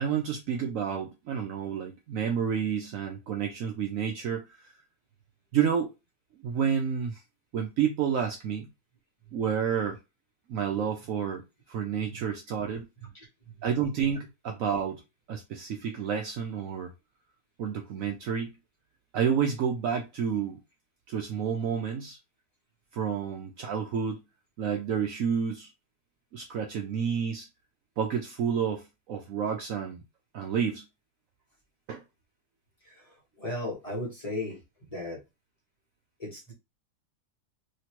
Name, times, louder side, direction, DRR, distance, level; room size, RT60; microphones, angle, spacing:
voice 1, 0.0-4.7 5.5-5.9 6.4-7.2 7.5-8.7 9.3-10.0 10.5-11.4 11.7-12.9 13.6-15.0 15.3-16.9 17.6-18.6 19.1-20.6 21.1-22.2 22.9-24.2 24.6-25.7 26.3-27.5 28.0-30.0 30.3-30.8 31.9-32.0, right 7 dB, 65° right, 0.9 m, -30 dB
voice 2, 33.4-34.6 34.9-35.2 36.2-36.5, left 1 dB, 25° left, 1.2 m, -35 dB
3.1 x 2.8 x 2.9 m
omnidirectional pair, 1.7 m